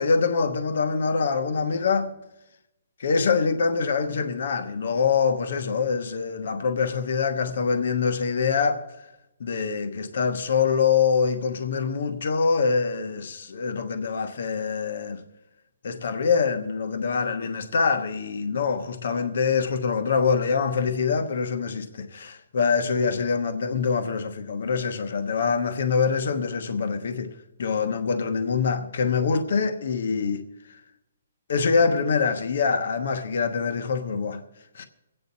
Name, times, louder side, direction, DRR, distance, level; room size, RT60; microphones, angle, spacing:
voice 1, 0.0-2.1 3.0-8.9 9.4-15.2 15.8-27.3 27.6-30.8 31.5-34.4 34.7-34.8, left 5 dB, 55° left, 1.1 m, -24 dB
23.5 x 8.9 x 4.1 m
hypercardioid pair, 175°, 0 cm